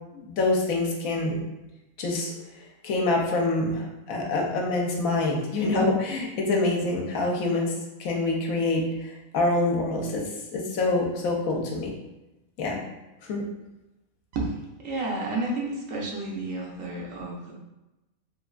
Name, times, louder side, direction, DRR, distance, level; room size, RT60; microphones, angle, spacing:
voice 1, 0.1-1.4 2.0-2.3 2.8-7.7 8.0-10.2 10.5-11.9 12.6-12.8 13.3-13.4, left 2 dB, 80° left, 0 dB, 1.0 m, -26 dB
voice 2, 14.8-17.5, right 2 dB, 70° right, -2 dB, 1.0 m, -31 dB
3.2 x 2.4 x 2.3 m, 0.99 s
omnidirectional pair, 1.5 m